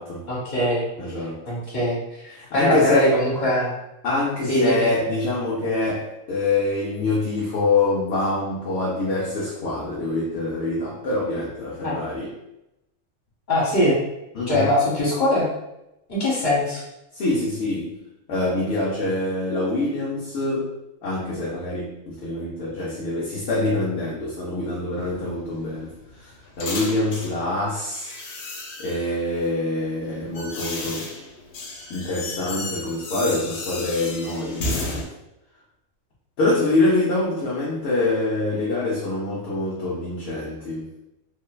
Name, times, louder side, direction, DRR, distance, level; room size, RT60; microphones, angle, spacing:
voice 1, 0.3-3.8 4.5-4.9 11.8-11.9 13.5-14.0 14.5-15.5 16.1-16.8, left 1 dB, 35° left, -7 dB, 1.2 m, -22 dB
voice 2, 1.0-1.5 2.4-3.2 4.0-12.3 14.3-14.7 17.1-18.0 18.3-20.7 21.0-28.1 28.8-31.1 31.9-35.1 36.4-41.0, left 2 dB, 60° left, -5 dB, 0.7 m, -25 dB
sound 1, 25.0-27.4 27.9-29.1 29.9-35.0, left 2 dB, 85° left, 1.0 m, -33 dB
3.1 x 2.1 x 2.2 m, 0.89 s
omnidirectional pair, 1.4 m